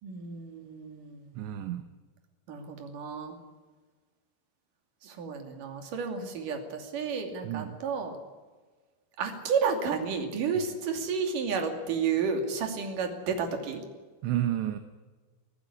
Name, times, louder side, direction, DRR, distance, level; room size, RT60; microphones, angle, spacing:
voice 1, 0.0-1.3 2.5-3.4 5.0-8.2 9.2-13.8, right 5 dB, 50° right, 4 dB, 3.9 m, -31 dB
voice 2, 1.3-1.9 7.4-7.8 10.6-10.7 14.2-14.8, right 12 dB, 75° right, 8 dB, 3.1 m, -31 dB
22.5 x 15.0 x 10.0 m, 1.4 s
omnidirectional pair, 5.5 m